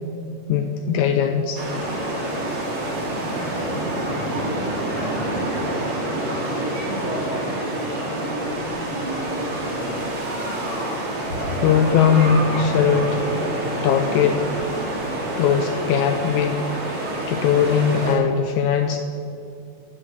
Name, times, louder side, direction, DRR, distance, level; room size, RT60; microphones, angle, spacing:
voice 1, 0.5-1.6 11.5-13.2 13.8-14.4 15.4-16.6 17.3-19.0, left 7 dB, 80° left, 6 dB, 1.8 m, -19 dB
sound 1, 1.5-18.1, right 1 dB, 45° right, 2.9 m, -27 dB
sound 2, 4.0-15.0, right 1 dB, 35° left, 1.2 m, -43 dB
voice 2, 4.1-10.2, equal, 15° right, -4 dB, 1.6 m, -34 dB
9.9 x 7.7 x 8.2 m, 2.6 s
omnidirectional pair, 3.7 m